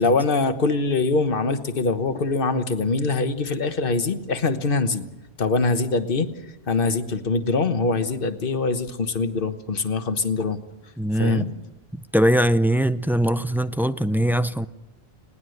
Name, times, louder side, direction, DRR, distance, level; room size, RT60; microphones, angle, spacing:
voice 1, 0.0-5.0 5.4-6.3 6.7-10.6 11.2-11.5, left 3 dB, 60° left, 1.4 m, -23 dB
voice 2, 11.0-11.5 12.1-14.7, right 1 dB, 5° right, 0.4 m, -21 dB
20.0 x 18.5 x 7.9 m
omnidirectional pair, 1.1 m